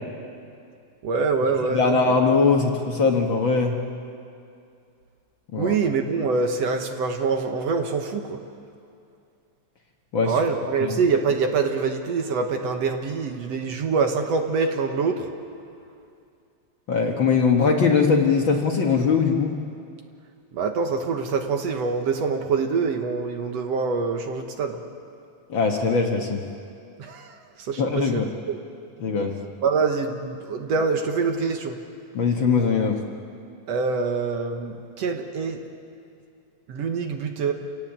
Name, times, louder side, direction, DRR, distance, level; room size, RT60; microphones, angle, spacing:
voice 1, 1.0-2.2 5.6-8.4 10.2-15.3 20.5-24.8 27.0-28.2 28.5-28.6 29.6-31.8 33.7-35.6 36.7-37.5, right 4 dB, 65° right, 5 dB, 2.1 m, -25 dB
voice 2, 1.7-3.8 5.5-5.7 10.1-10.3 10.8-11.0 16.9-19.5 25.5-26.4 27.8-28.3 29.0-29.4 32.1-33.0, left 5 dB, 50° left, 1 dB, 1.8 m, -21 dB
28.5 x 18.0 x 8.2 m, 2.5 s
omnidirectional pair, 3.4 m